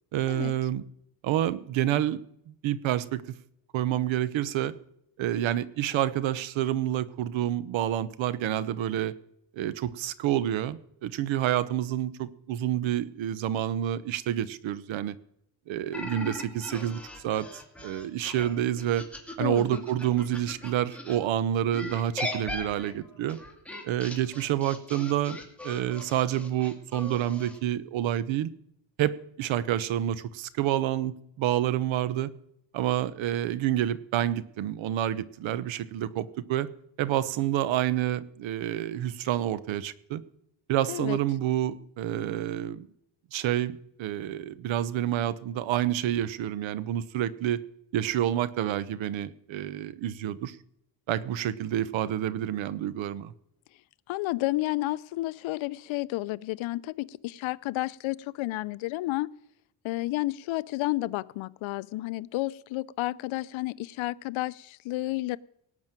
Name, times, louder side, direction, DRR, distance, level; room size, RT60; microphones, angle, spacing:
voice 1, 0.1-0.8 1.2-3.2 3.7-4.7 5.2-9.1 9.5-15.2 15.7-17.5 17.8-19.0 19.4-23.4 23.8-25.4 25.6-28.5 29.0-32.3 32.7-36.7 37.0-40.2 40.7-42.9 43.3-47.6 47.9-50.6 51.1-53.3, right 12 dB, 75° right, 17 dB, 1.0 m, -28 dB
sound 1, 15.9-21.2 21.7-27.6, left 1 dB, 5° left, 2.5 m, -39 dB
voice 2, 19.4-19.8 40.9-41.2 54.1-59.3 59.8-65.4, left 18 dB, 80° left, 19 dB, 0.7 m, -31 dB
18.5 x 6.3 x 9.0 m, 0.74 s
cardioid pair, 130°, 47 cm